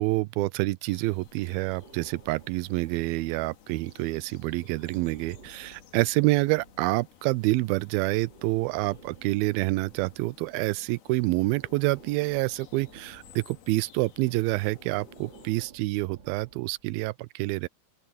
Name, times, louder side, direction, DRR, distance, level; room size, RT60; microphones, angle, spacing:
voice 1, 0.0-17.7, right 21 dB, 85° right, 2.3 m, -27 dB
sound 1, 0.9-15.5, left 9 dB, 85° left, 4.0 m, -55 dB
Breathing, 1.3-3.8 4.5-6.9 8.0-10.8 11.4-13.7 14.6-16.9, right 3 dB, 35° right, 3.4 m, -54 dB
open air
omnidirectional pair, 4.3 m